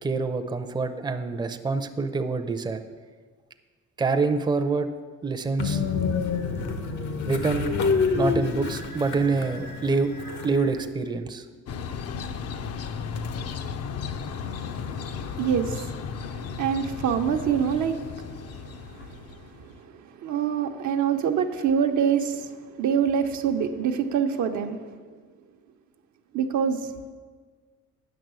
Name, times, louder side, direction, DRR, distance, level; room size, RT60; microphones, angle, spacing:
voice 1, 0.0-2.8 4.0-4.9 5.2-5.8 7.2-7.7 8.1-10.1 10.4-11.4, right 4 dB, 15° right, 7 dB, 0.5 m, -26 dB
Train, 5.6-10.9, left 5 dB, 75° left, 1.0 m, -28 dB
sound 1, 11.7-19.8, left 6 dB, 55° left, 0.6 m, -35 dB
voice 2, 14.3-19.2 19.6-19.9 20.2-25.0 26.3-26.9, right 7 dB, 70° right, 5 dB, 0.8 m, -26 dB
9.2 x 6.2 x 6.1 m, 1.5 s
cardioid pair, 90°, 30 cm